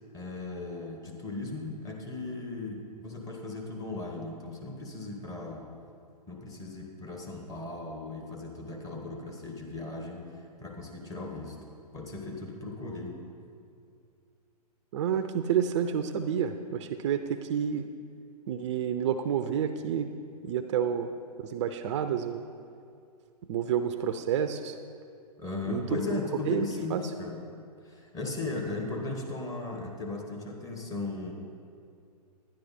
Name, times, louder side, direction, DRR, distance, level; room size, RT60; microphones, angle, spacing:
voice 1, 0.1-5.7 6.3-11.6 11.9-13.2 25.4-27.4 27.8-31.3, left 2 dB, 15° left, 0 dB, 1.5 m, -37 dB
voice 2, 14.9-17.9 18.5-20.1 20.4-21.1 21.4-22.4 23.5-24.8 25.7-26.2 26.5-26.6 26.9-27.0, right 8 dB, 45° right, 9 dB, 0.5 m, -29 dB
11.5 x 10.5 x 4.3 m, 2.4 s
hypercardioid pair, 120°, 20 cm